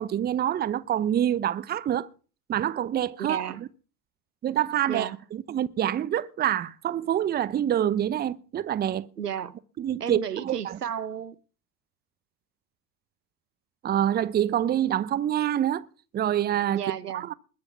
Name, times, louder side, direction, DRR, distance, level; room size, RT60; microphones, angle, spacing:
voice 1, 0.0-2.1 2.5-3.7 4.4-9.1 9.8-10.8 13.8-15.9 16.1-16.8 17.1-17.3, right 10 dB, 20° right, 0.7 m, -26 dB
voice 2, 3.3-3.6 4.9-5.2 9.2-9.6 10.0-11.4 16.7-17.3, right 9 dB, 85° right, 0.8 m, -33 dB
21.0 x 7.9 x 5.8 m
figure-of-eight pair, 75°, 46 cm